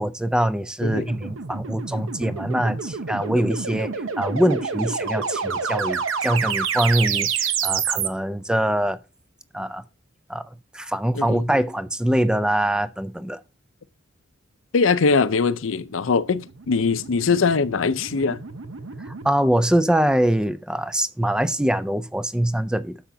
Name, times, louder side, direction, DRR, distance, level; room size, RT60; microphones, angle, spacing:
voice 1, 0.0-3.9 4.2-9.0 9.5-9.8 10.3-10.4 10.7-13.4 19.1-23.0, right 1 dB, 5° right, 0.4 m, -23 dB
sound 1, 0.8-8.1 16.3-19.3, right 6 dB, 85° right, 0.8 m, -28 dB
voice 2, 11.1-11.5 14.7-18.4, left 4 dB, 80° left, 0.6 m, -21 dB
10.0 x 7.0 x 2.7 m
head